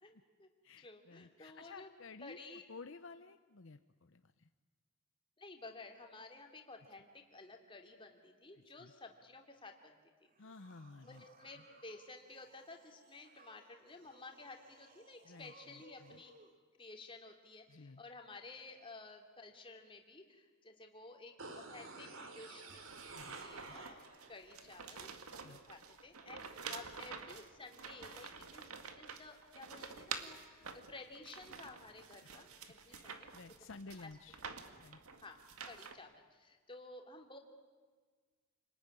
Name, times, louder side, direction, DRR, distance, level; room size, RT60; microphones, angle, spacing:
voice 1, 0.0-0.5 0.8-1.9 2.2-2.6 5.4-10.3 11.0-16.3 16.8-33.3 34.0-34.1 35.2-35.4 35.7-37.4, left 3 dB, 25° left, 3 dB, 2.9 m, -54 dB
voice 2, 0.6-2.4 2.7-4.5 8.8-8.9 10.4-11.2 11.6-11.7 15.2-16.2 17.7-18.0 23.1-23.4 23.7-23.8 25.4-25.6 32.2-32.3 32.9-33.1 33.3-34.4 34.8-35.0, left 3 dB, 60° left, 10 dB, 0.8 m, -53 dB
sound 1, 10.2-16.5, right 2 dB, 40° right, 2.6 m, -64 dB
sound 2, 21.4-24.4 24.7-24.8, right 3 dB, 65° right, 2.8 m, -50 dB
sound 3, 22.7-35.9, right 6 dB, 85° right, 2.0 m, -49 dB
29.0 x 20.0 x 9.9 m, 1.5 s
head